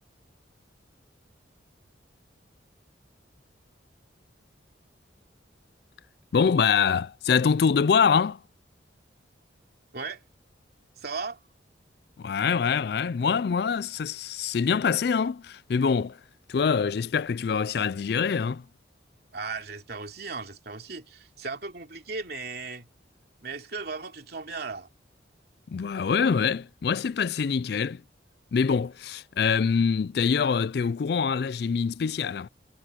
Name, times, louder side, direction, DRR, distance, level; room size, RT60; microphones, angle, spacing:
voice 1, 6.3-8.4 12.2-16.2 16.5-18.6 25.7-28.0 28.5-32.5, left 6 dB, 55° left, 0.3 m, -25 dB
voice 2, 11.0-11.4 19.3-22.9 23.4-24.9, right 4 dB, 55° right, 3.1 m, -36 dB
head